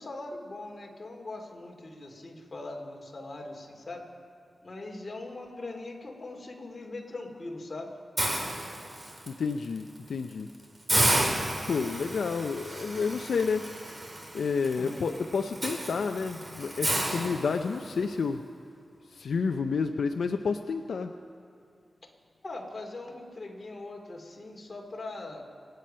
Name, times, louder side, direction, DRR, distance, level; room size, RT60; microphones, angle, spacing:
voice 1, 0.0-4.0 4.6-7.9 14.8-15.1 22.4-25.4, left 2 dB, 35° left, 1 dB, 2.4 m, -41 dB
Hiss, 8.2-9.3 9.8-10.0 10.3-10.4 10.9-18.0, right 1 dB, 25° right, 2.6 m, -31 dB
voice 2, 9.3-10.5 11.7-13.7 14.3-18.4 19.1-21.2, left 5 dB, 80° left, 6 dB, 0.5 m, -30 dB
26.0 x 9.0 x 5.5 m, 2.4 s
wide cardioid pair, 100°, 0 cm